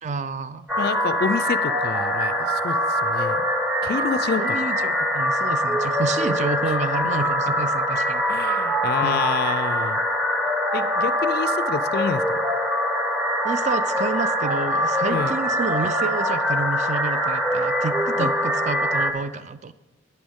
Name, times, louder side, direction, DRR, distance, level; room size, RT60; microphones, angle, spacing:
voice 1, 0.0-0.7 4.4-8.2 9.0-9.2 13.4-19.7, right 4 dB, 35° right, 14 dB, 0.4 m, -29 dB
sound 1, 0.7-19.1, equal, 5° right, 0.7 m, -23 dB
voice 2, 0.8-3.4 3.8-4.6 8.3-10.0 10.7-12.2 15.1-15.3 18.2-18.3, left 6 dB, 50° left, 15 dB, 0.3 m, -28 dB
11.5 x 9.4 x 3.6 m, 1.1 s
head